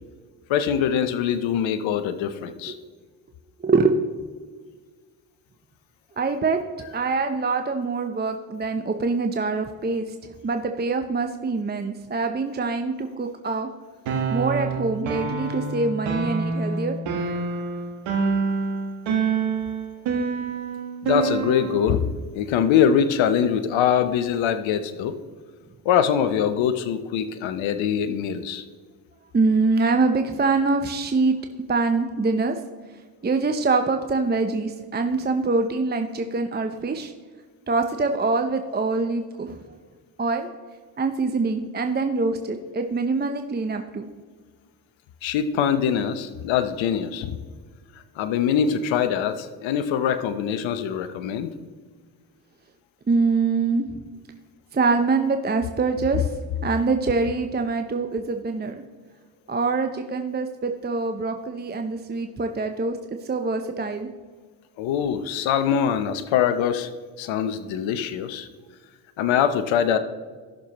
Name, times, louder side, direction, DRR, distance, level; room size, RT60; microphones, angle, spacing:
voice 1, 0.5-2.8 21.0-22.1 22.3-25.2 25.8-28.6 45.2-47.4 48.2-51.5 56.1-56.2 64.8-66.9 67.2-68.5 69.2-70.0, left 8 dB, 65° left, 11 dB, 0.8 m, -23 dB
voice 2, 3.6-4.0 6.2-6.6 6.9-13.7 14.3-17.0 29.3-31.4 31.7-32.6 33.2-37.1 37.7-39.6 40.2-40.5 41.0-44.1 53.1-53.9 54.7-56.4 56.6-58.7 59.5-63.0 63.2-64.1, right 3 dB, 20° right, 6 dB, 0.7 m, -24 dB
sound 1, 14.1-21.9, right 5 dB, 70° right, 1.6 m, -27 dB
15.0 x 6.6 x 3.0 m, 1.5 s
hypercardioid pair, 50°, 49 cm